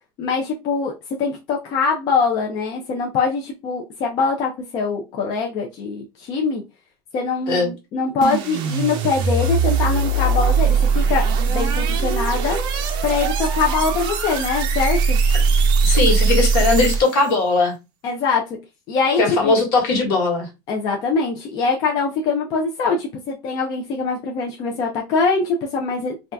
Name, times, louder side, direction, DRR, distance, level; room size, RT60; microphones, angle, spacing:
voice 1, 0.2-0.9 1.2-6.6 7.1-12.6 13.0-15.2 18.0-18.6 18.9-19.5 20.7-26.3, left 4 dB, 35° left, 0.5 m, -23 dB
sound 1, 8.2-17.3, right 4 dB, 35° right, 0.5 m, -20 dB
voice 2, 15.8-17.7 19.2-20.5, left 3 dB, 65° left, 1.4 m, -19 dB
2.7 x 2.3 x 3.3 m
cardioid pair, 175°, 12 cm